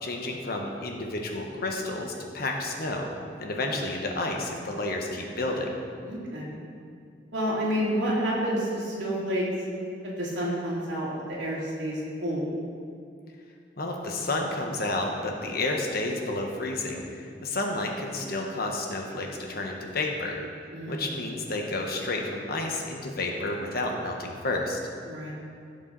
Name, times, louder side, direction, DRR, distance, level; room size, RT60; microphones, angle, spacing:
voice 1, 0.0-3.1 3.4-5.7 13.8-20.4 20.9-24.8, left 2 dB, 55° left, 1 dB, 1.4 m, -31 dB
voice 2, 6.0-6.6 7.3-9.4 10.0-12.5 20.7-21.0 25.1-25.3, equal, 75° right, -6 dB, 2.9 m, -29 dB
16.0 x 7.1 x 4.1 m, 2.3 s
head